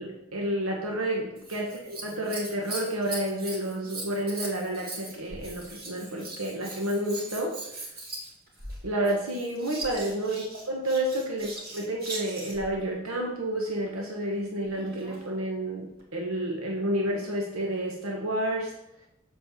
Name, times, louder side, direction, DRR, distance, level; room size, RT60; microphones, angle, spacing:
voice 1, 0.0-7.6 8.8-18.7, right 1 dB, 85° right, -1 dB, 1.3 m, -30 dB
Scissors, 1.4-12.7 14.7-15.3 16.0-16.1, right 2 dB, 45° right, 2.5 m, -40 dB
7.2 x 4.7 x 7.0 m, 0.85 s
head